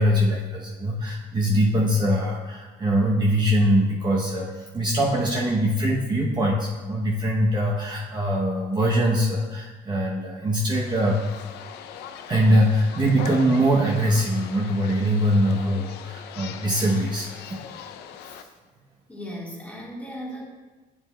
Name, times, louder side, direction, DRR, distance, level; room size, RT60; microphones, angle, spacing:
voice 1, 0.0-11.2 12.3-17.6, equal, 25° right, -3 dB, 0.8 m, -22 dB
sound 1, 10.7-18.4, left 8 dB, 75° left, 0.5 m, -40 dB
voice 2, 19.1-20.4, equal, 10° left, -3 dB, 1.6 m, -37 dB
8.4 x 6.9 x 2.2 m, 1.3 s
cardioid pair, 110°, 17 cm